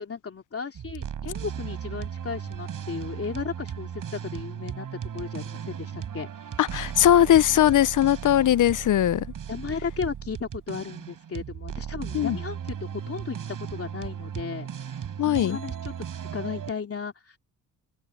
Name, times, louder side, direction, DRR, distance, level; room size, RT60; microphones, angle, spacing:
voice 1, 0.0-4.9 5.1-6.5 9.5-15.9 16.3-17.4, left 5 dB, 40° left, 2.9 m, -35 dB
sound 1, 0.7-16.7, right 8 dB, 60° right, 7.1 m, -36 dB
voice 2, 6.6-9.3 12.1-12.4 15.2-15.6, left 11 dB, 55° left, 0.8 m, -20 dB
open air
supercardioid pair, 60°, 36 cm